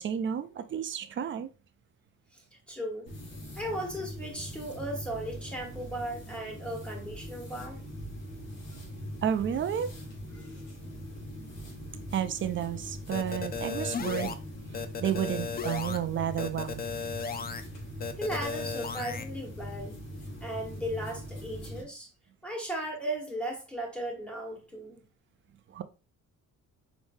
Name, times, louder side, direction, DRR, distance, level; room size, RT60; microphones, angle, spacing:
voice 1, 0.0-1.5 9.2-9.9 12.1-14.4 15.0-16.8 25.7-25.8, right 9 dB, 35° right, 0.4 m, -31 dB
voice 2, 2.3-3.1 3.6-7.8 10.3-10.5 18.1-20.0 20.4-22.1 22.4-25.0, right 1 dB, 5° left, 1.4 m, -36 dB
sound 1, 3.1-21.8, equal, 85° left, 2.4 m, -42 dB
sound 2, 13.1-14.3 14.7-16.0 16.4-17.6 18.0-19.2, left 5 dB, 30° left, 0.4 m, -35 dB
5.0 x 3.5 x 2.6 m
cardioid pair, 145°, 33 cm